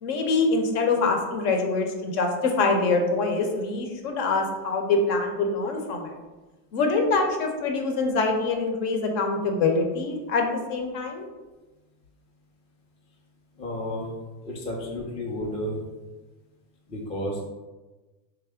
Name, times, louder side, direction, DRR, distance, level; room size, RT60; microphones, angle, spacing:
voice 1, 0.0-6.1 6.7-11.2, left 3 dB, 65° left, 3 dB, 0.8 m, -24 dB
voice 2, 13.6-14.1 14.4-15.8 16.9-17.5, left 1 dB, 15° left, -2 dB, 0.3 m, -32 dB
3.4 x 2.1 x 3.5 m, 1.2 s
supercardioid pair, 115°, 49 cm